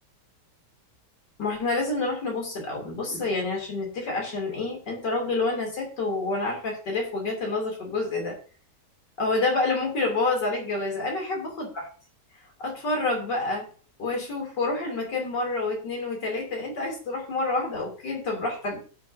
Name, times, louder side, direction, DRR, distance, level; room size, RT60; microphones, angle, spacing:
voice 1, 1.4-8.4 9.2-11.9 12.6-13.7 14.0-18.8, left 3 dB, 85° left, 0 dB, 3.7 m, -28 dB
16.0 x 6.6 x 2.7 m, 0.40 s
omnidirectional pair, 1.8 m